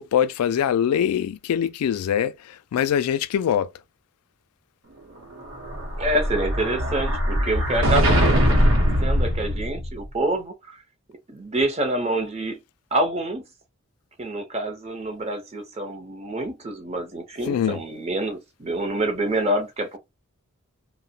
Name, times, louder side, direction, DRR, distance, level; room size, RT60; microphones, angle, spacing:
voice 1, 0.0-3.7 17.5-17.8, left 9 dB, 90° left, 0.3 m, -23 dB
Explosion, 5.4-10.0, equal, 65° right, 0.8 m, -21 dB
voice 2, 6.0-8.6 9.0-10.8 11.3-12.6 12.9-13.4 14.2-20.0, right 1 dB, 30° right, 0.6 m, -27 dB
2.8 x 2.0 x 2.7 m
head